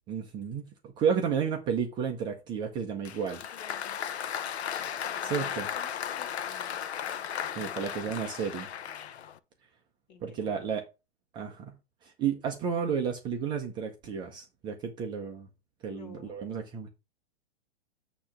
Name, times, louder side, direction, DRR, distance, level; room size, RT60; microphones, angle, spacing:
voice 1, 0.1-3.4 5.2-5.7 7.5-8.7 10.2-10.8 11.3-15.5 15.8-16.9, right 7 dB, 15° right, 0.6 m, -32 dB
Applause, 3.0-9.4, left 9 dB, 75° left, 0.9 m, -35 dB
voice 2, 5.0-6.7 7.5-8.0 10.1-10.8 15.9-16.4, left 6 dB, 45° left, 1.8 m, -51 dB
8.6 x 2.9 x 5.7 m
hypercardioid pair, 160°, 33 cm